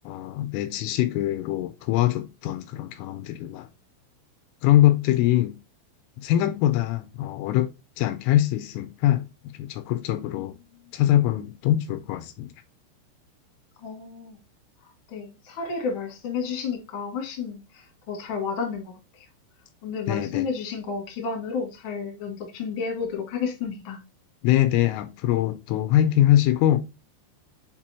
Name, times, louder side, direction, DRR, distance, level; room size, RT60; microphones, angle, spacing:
voice 1, 0.1-3.7 4.6-5.6 6.2-7.7 8.0-9.3 9.6-10.6 10.9-12.5 20.1-20.5 24.4-26.8, left 13 dB, 85° left, 3.0 m, -23 dB
voice 2, 13.8-14.4 15.1-18.9 19.8-24.0, left 5 dB, 50° left, 1.5 m, -31 dB
7.5 x 4.4 x 2.9 m
omnidirectional pair, 5.8 m